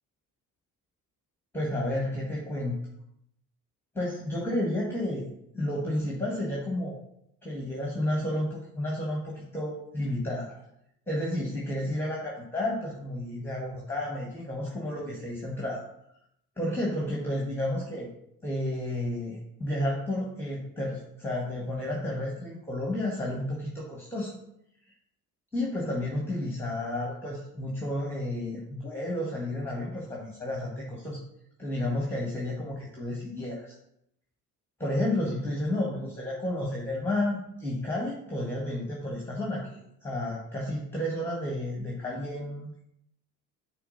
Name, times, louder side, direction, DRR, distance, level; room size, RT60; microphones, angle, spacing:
voice 1, 1.5-2.8 4.0-5.3 5.5-7.0 7.4-10.5 11.1-15.8 16.6-18.1 18.4-24.3 25.5-31.2 31.6-33.7 34.8-42.8, left 1 dB, 5° left, -3 dB, 1.8 m, -31 dB
5.7 x 3.9 x 5.6 m, 0.78 s
figure-of-eight pair, 50°, 48 cm